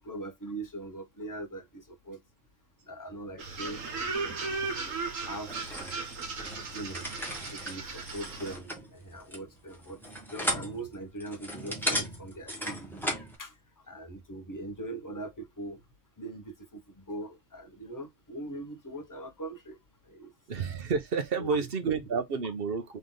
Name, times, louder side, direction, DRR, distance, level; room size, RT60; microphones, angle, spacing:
voice 1, 0.0-2.2 2.9-6.0 6.7-7.1 7.5-10.0 10.3-13.0 13.4-13.6 13.9-15.8 16.2-19.8 20.1-20.3 21.4-21.6 21.8-21.9, right 1 dB, 20° left, 0.7 m, -41 dB
sound 1, 3.4-8.6, right 4 dB, 80° right, 1.6 m, -36 dB
sound 2, 5.4-13.3, equal, ahead, 1.3 m, -36 dB
voice 2, 20.5-23.0, right 5 dB, 50° right, 0.9 m, -30 dB
3.6 x 3.3 x 3.7 m
omnidirectional pair, 1.4 m